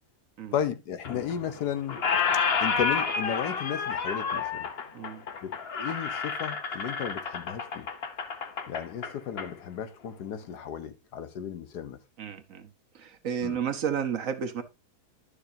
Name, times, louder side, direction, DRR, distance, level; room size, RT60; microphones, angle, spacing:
voice 1, 0.5-2.0 2.6-4.7 5.4-7.9 8.7-12.0 13.4-13.6, left 9 dB, 75° left, 1.4 m, -34 dB
Squeak, 1.0-1.6 1.9-9.5, left 5 dB, 45° left, 0.9 m, -30 dB
voice 2, 12.2-12.7 12.9-14.6, right 8 dB, 60° right, 1.2 m, -32 dB
11.0 x 6.6 x 2.7 m
omnidirectional pair, 1.7 m